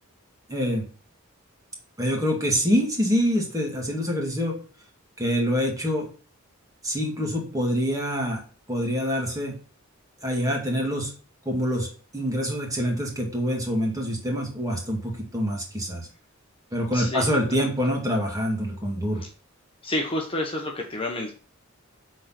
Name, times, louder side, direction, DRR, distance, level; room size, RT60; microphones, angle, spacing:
voice 1, 0.5-0.8 2.0-4.6 5.2-6.1 6.8-8.4 8.7-9.6 10.2-11.2 11.5-16.1 16.7-19.2, equal, 15° right, 0 dB, 2.3 m, -26 dB
voice 2, 16.9-17.3 19.2-19.3 19.8-21.3, left 1 dB, 25° left, 1 dB, 1.1 m, -29 dB
7.5 x 4.5 x 5.9 m, 0.38 s
head